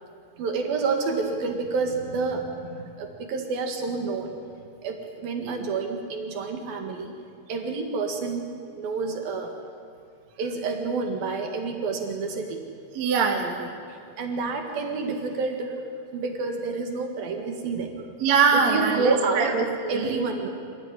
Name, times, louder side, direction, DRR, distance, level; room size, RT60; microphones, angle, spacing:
voice 1, 0.4-4.3 4.8-7.1 7.5-8.5 8.8-9.5 10.4-12.7 13.9-15.8 16.1-17.9 18.7-19.5 19.9-20.5, right 4 dB, 70° right, 3 dB, 3.7 m, -29 dB
voice 2, 12.9-13.7 18.2-20.1, right 5 dB, 50° right, 2 dB, 3.1 m, -23 dB
27.5 x 16.5 x 9.9 m, 2.5 s
omnidirectional pair, 4.4 m